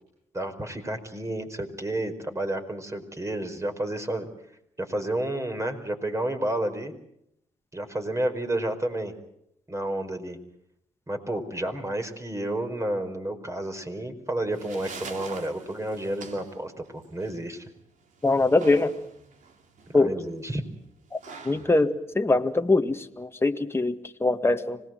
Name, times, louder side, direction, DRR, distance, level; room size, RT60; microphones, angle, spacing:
voice 1, 0.3-4.3 4.8-6.9 7.7-9.1 9.7-10.4 11.1-17.6 19.9-20.6, right 1 dB, 20° right, 5 dB, 4.9 m, -31 dB
sound 1, 14.3-23.3, right 5 dB, 70° right, 3.2 m, -46 dB
voice 2, 18.2-18.9 19.9-20.1 21.1-21.2 21.4-24.8, left 2 dB, 20° left, 6 dB, 1.7 m, -23 dB
26.0 x 19.0 x 7.7 m, 0.74 s
supercardioid pair, 60°, 13 cm